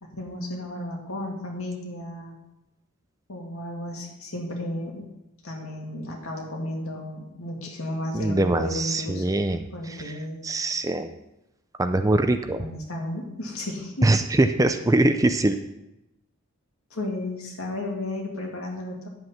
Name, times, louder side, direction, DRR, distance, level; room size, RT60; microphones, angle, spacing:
voice 1, 0.0-2.4 3.3-5.1 5.4-9.2 9.7-10.4 12.6-14.1 16.9-19.1, left 1 dB, 75° left, 0 dB, 2.4 m, -33 dB
voice 2, 8.1-9.7 10.0-10.1 10.4-11.1 11.8-12.6 14.0-15.6, right 2 dB, 15° right, 8 dB, 0.4 m, -22 dB
9.8 x 7.9 x 5.8 m, 0.91 s
head